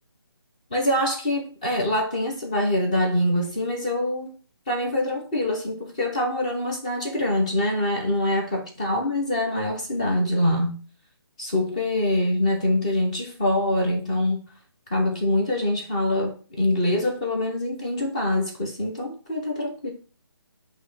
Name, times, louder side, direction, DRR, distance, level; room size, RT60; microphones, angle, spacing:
voice 1, 0.7-4.4 4.7-10.7 11.4-14.4 14.9-19.9, left 1 dB, 15° left, 1.1 m, -24 dB
7.3 x 3.1 x 4.2 m
hypercardioid pair, 180°, 13 cm